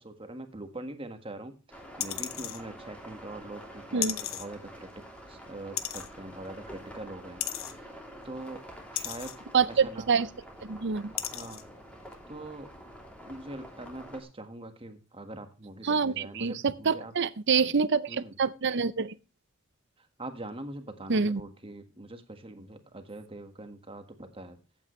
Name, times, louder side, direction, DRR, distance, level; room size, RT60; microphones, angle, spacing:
voice 1, 0.0-4.9 5.3-8.6 8.9-9.3 9.7-10.2 11.3-11.6 12.3-12.7 13.2-17.1 18.1-18.4 20.0-24.6, right 2 dB, 25° right, 1.6 m, -43 dB
sound 1, 1.7-14.2, equal, 5° left, 3.0 m, -47 dB
sound 2, 2.0-2.6 4.0-4.5 5.8-6.1 7.4-7.7 9.0-9.4 10.4-10.5 11.2-11.6 12.1-12.2, left 12 dB, 80° left, 0.9 m, -34 dB
voice 2, 9.5-10.3 10.6-11.1 15.8-19.1 21.1-21.4, right 5 dB, 60° right, 0.7 m, -26 dB
14.5 x 8.8 x 3.2 m
head